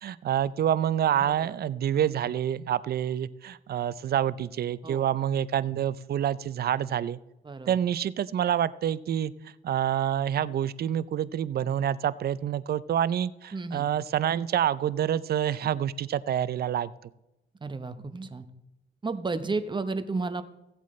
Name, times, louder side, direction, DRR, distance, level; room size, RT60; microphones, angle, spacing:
voice 1, 0.0-7.2 7.7-9.3 9.6-16.9, right 10 dB, 50° right, 17 dB, 0.5 m, -27 dB
voice 2, 1.2-1.6 4.8-5.1 7.4-7.8 13.5-13.9 17.6-18.5 19.0-20.4, right 3 dB, 25° right, 10 dB, 0.9 m, -32 dB
16.0 x 8.1 x 3.2 m, 0.92 s
cardioid pair, 90°, 20 cm